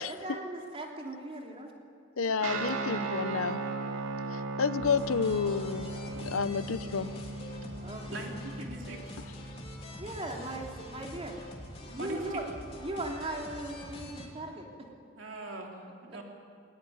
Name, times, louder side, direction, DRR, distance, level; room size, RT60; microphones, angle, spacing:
voice 1, 0.1-1.7 2.2-2.3 7.8-8.2 10.0-11.4 11.8-14.9 16.1-16.2, right 1 dB, 30° right, 0 dB, 3.1 m, -39 dB
voice 2, 2.2-3.6 4.3-5.9 6.3-7.1, left 5 dB, 80° left, 14 dB, 0.8 m, -30 dB
Guitar, 2.4-12.2, right 3 dB, 80° right, 2.5 m, -38 dB
sound 1, 4.8-14.3, left 1 dB, 30° left, 3.3 m, -46 dB
voice 3, 8.1-9.2 12.0-12.2 15.2-16.2, right 1 dB, 60° right, 1 dB, 3.4 m, -41 dB
20.5 x 20.0 x 9.4 m, 2.3 s
head